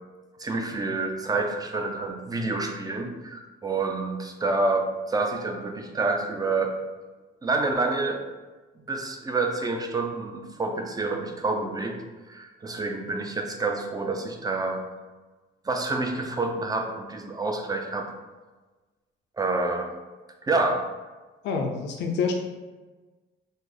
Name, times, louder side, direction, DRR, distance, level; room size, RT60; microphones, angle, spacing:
voice 1, 0.4-6.7 7.4-8.2 8.9-12.0 12.3-14.8 15.6-18.1 19.4-19.9 20.4-20.8, right 3 dB, 20° right, 3 dB, 0.4 m, -28 dB
voice 2, 21.4-22.3, left 5 dB, 65° left, 3 dB, 0.5 m, -27 dB
3.2 x 2.0 x 3.7 m, 1.3 s
cardioid pair, 90°, 20 cm